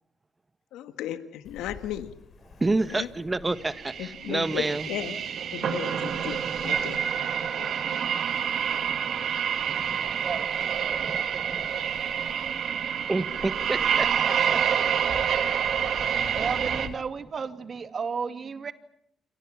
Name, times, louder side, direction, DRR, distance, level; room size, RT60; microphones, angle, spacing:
voice 1, 0.7-2.1 3.0-3.1 4.0-5.1 5.5-7.0 7.6-8.0, left 11 dB, 80° left, 10 dB, 1.5 m, -35 dB
Ocean, 1.4-16.9, left 6 dB, 55° left, 5.2 m, -48 dB
voice 2, 2.6-4.9 8.7-10.3 10.8-11.7 13.1-14.6, right 2 dB, 25° right, 13 dB, 1.4 m, -30 dB
sound 1, 3.7-16.9, right 8 dB, 65° right, 2.2 m, -27 dB
voice 3, 10.2-11.2 16.3-18.7, right 5 dB, 50° right, 10 dB, 2.4 m, -34 dB
28.5 x 23.5 x 7.4 m, 0.75 s
supercardioid pair, 55°, 0 cm